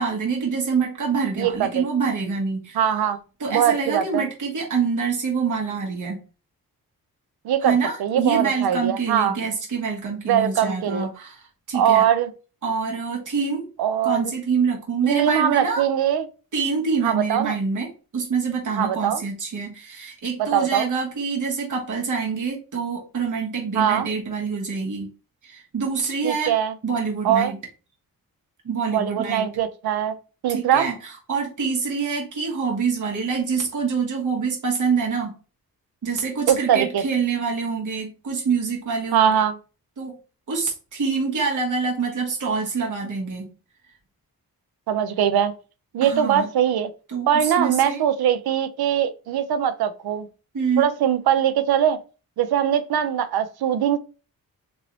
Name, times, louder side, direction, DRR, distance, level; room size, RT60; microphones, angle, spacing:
voice 1, 0.0-2.8 3.4-6.2 7.6-12.1 12.6-13.7 14.0-15.8 16.5-25.1 25.4-26.5 26.8-27.6 28.6-29.5 30.5-35.3 36.0-39.3 40.0-40.2 40.5-43.5 46.0-46.5 47.1-48.0 50.5-50.9, right 5 dB, 55° right, 1.2 m, -26 dB
voice 2, 1.4-1.8 2.8-3.2 3.5-4.3 7.4-9.4 10.3-11.1 11.7-12.3 13.8-14.2 15.0-16.3 17.0-17.6 18.8-19.2 20.4-20.9 23.7-24.1 26.2-26.7 27.2-27.5 28.9-30.2 30.4-30.9 36.5-37.0 39.1-39.5 44.9-45.5 45.9-46.9 47.3-50.3 50.8-52.0 52.4-54.0, right 9 dB, 85° right, 0.5 m, -21 dB
3.1 x 2.6 x 2.9 m
cardioid pair, 90°, 37 cm